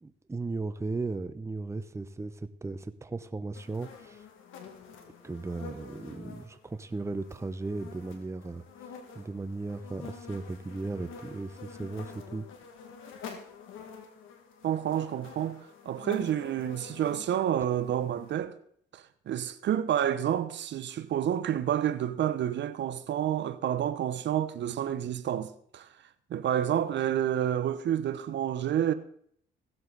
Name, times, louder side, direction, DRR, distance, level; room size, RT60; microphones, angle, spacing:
voice 1, 0.0-4.2 5.2-8.7 9.1-12.5, right 3 dB, 15° right, 0.7 m, -36 dB
sound 1, 3.5-18.4, left 6 dB, 85° left, 1.9 m, -48 dB
voice 2, 14.6-15.6 15.9-18.5 18.9-25.9 26.3-28.9, right 10 dB, 65° right, 0.8 m, -29 dB
16.0 x 7.9 x 3.9 m
cardioid pair, 90°, 20 cm